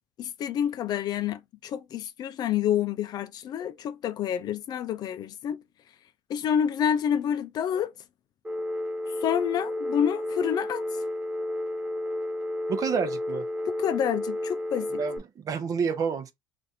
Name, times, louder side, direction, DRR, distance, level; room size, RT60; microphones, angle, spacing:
voice 1, 0.2-5.6 6.3-7.9 9.2-10.8 13.7-15.0, left 9 dB, 45° left, 0.4 m, -28 dB
Telephone, 8.4-15.2, left 1 dB, 15° right, 0.9 m, -32 dB
voice 2, 12.7-13.5 15.0-16.3, right 6 dB, 40° right, 0.7 m, -29 dB
2.5 x 2.5 x 4.2 m
supercardioid pair, 100°, 9 cm